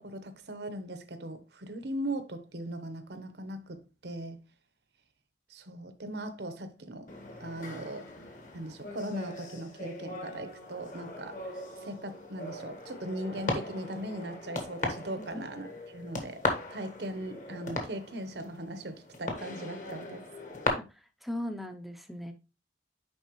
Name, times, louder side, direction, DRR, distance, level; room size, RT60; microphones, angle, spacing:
voice 1, 0.0-4.4 5.5-8.1 8.5-20.3, right 1 dB, 75° right, 1.0 m, -39 dB
sound 1, 7.1-20.7, left 2 dB, 45° left, 1.4 m, -39 dB
voice 2, 20.9-22.3, left 1 dB, ahead, 0.5 m, -38 dB
9.8 x 4.0 x 3.0 m
head